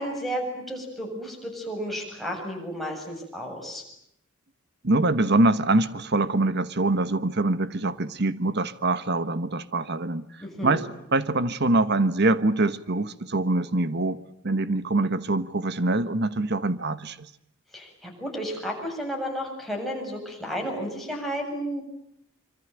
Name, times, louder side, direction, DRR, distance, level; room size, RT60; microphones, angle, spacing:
voice 1, 0.0-3.8 10.4-10.8 17.7-21.8, equal, ahead, 7.6 m, -32 dB
voice 2, 4.8-10.3 10.6-17.3, right 2 dB, 55° right, 1.3 m, -24 dB
26.0 x 24.5 x 9.1 m
head